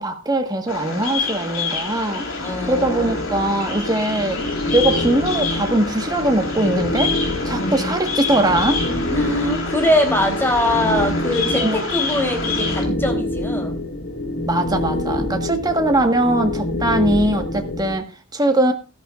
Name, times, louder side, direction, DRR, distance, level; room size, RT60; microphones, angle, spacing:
voice 1, 0.0-2.3 2.7-4.4 4.7-7.1 7.4-8.8 11.5-11.8 14.5-18.7, right 1 dB, 20° right, 1.5 m, -21 dB
Bird vocalization bird call bird song, 0.7-12.8, left 4 dB, 75° left, 3.7 m, -28 dB
sound 1, 1.0-18.0, left 1 dB, 60° left, 2.2 m, -26 dB
voice 2, 2.4-3.2 7.6-7.9 9.1-13.7, left 1 dB, 10° left, 3.5 m, -22 dB
16.0 x 13.5 x 2.5 m
head